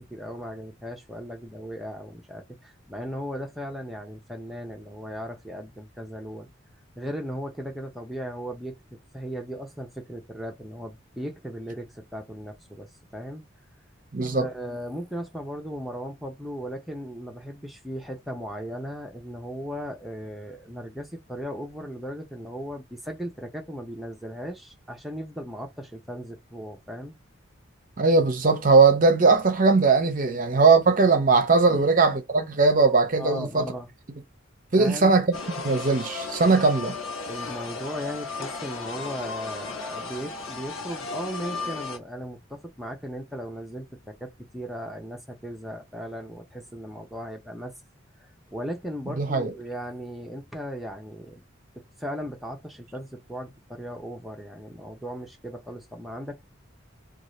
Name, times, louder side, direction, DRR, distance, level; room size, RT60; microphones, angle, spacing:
voice 1, 0.0-6.5 7.0-13.5 14.3-27.2 30.3-30.4 31.7-31.9 33.2-33.9 34.8-35.2 36.4-36.6 37.3-47.7 48.5-51.4 52.0-56.5, equal, ahead, 0.6 m, -37 dB
voice 2, 14.1-14.5 28.0-33.7 34.7-35.2 35.6-36.9 49.2-49.5, right 4 dB, 45° right, 0.6 m, -19 dB
sound 1, 35.3-42.0, left 4 dB, 90° left, 0.9 m, -35 dB
2.6 x 2.3 x 3.1 m
head